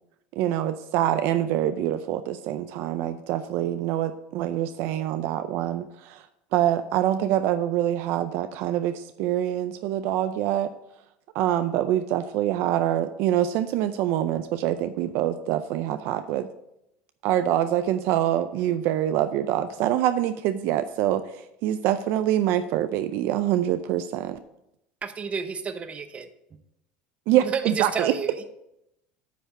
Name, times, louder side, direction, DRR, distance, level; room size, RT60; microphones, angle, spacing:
voice 1, 0.4-6.2 6.5-10.7 11.3-16.5 17.2-24.4 27.3-28.1, right 12 dB, 65° right, 11 dB, 0.4 m, -25 dB
voice 2, 25.0-26.3 27.4-28.4, right 5 dB, 30° right, 10 dB, 0.8 m, -31 dB
9.2 x 3.4 x 6.5 m, 0.83 s
supercardioid pair, 110°, 4 cm